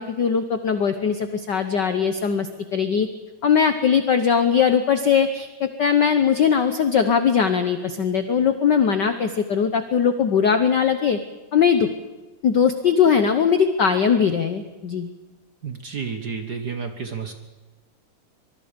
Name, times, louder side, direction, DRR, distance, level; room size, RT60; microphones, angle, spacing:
voice 1, 0.0-3.1 3.4-11.2 11.5-11.9 12.4-15.1, left 7 dB, 85° left, 9 dB, 0.9 m, -20 dB
voice 2, 15.6-17.3, right 6 dB, 45° right, 6 dB, 1.4 m, -31 dB
24.0 x 22.5 x 5.2 m, 1.2 s
omnidirectional pair, 3.3 m